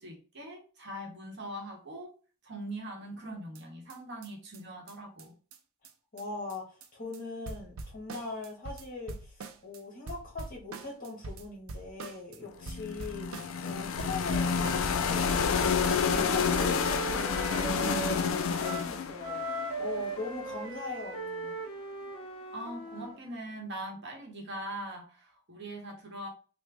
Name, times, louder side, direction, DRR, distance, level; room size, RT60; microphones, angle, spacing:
voice 1, 0.0-2.1 2.4-5.3 22.5-26.3, right 1 dB, 55° right, 1 dB, 0.9 m, -41 dB
sound 1, 3.6-3.7 3.9-4.0 4.2-4.3 4.5-4.6 4.9-5.0 5.2-5.3 5.5-5.6 5.8-5.9 6.2-6.3 6.5-6.9 7.1-7.2 7.5-9.8 10.1-12.4 12.7-13.7 14.0-15.0 15.3-15.9, right 3 dB, 70° right, 0.5 m, -43 dB
voice 2, 6.1-9.3 9.6-21.5, left 3 dB, 40° left, -1 dB, 1.3 m, -41 dB
sound 2, 12.6-20.6, left 6 dB, 70° left, 0.4 m, -29 dB
Wind instrument woodwind instrument, 15.2-18.9 19.2-23.2, right 3 dB, 25° left, 0.6 m, -39 dB
3.4 x 2.1 x 3.3 m, 0.37 s
head